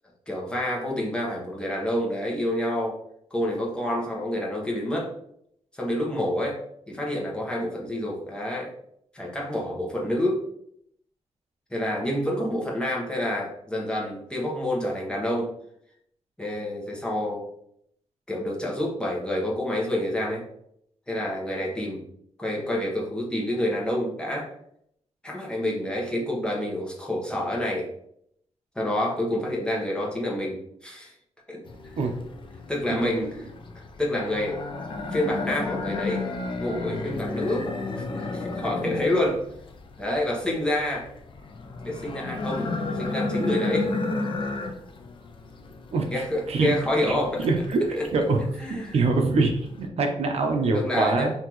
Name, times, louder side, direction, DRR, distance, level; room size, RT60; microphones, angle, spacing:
voice 1, 0.3-3.0 3.3-5.1 5.7-6.6 6.9-8.7 9.1-10.4 11.7-15.5 16.4-17.4 18.3-20.4 21.1-22.0 22.4-24.5 25.2-27.9 28.7-31.1 31.5-31.6 32.7-33.5 34.0-34.6 35.1-36.3 36.6-37.7 38.0-39.4 40.0-41.1 41.8-43.9 46.1-47.5 48.0-48.1 48.6-49.0 50.7-51.3, left 1 dB, 10° left, -3 dB, 1.1 m, -28 dB
sound 1, 31.6-49.9, left 3 dB, 45° left, 0.6 m, -33 dB
voice 2, 45.9-46.7 47.4-48.4 48.7-51.3, right 3 dB, 60° right, 3 dB, 0.7 m, -24 dB
5.8 x 2.8 x 3.0 m, 0.72 s
wide cardioid pair, 145°, 12 cm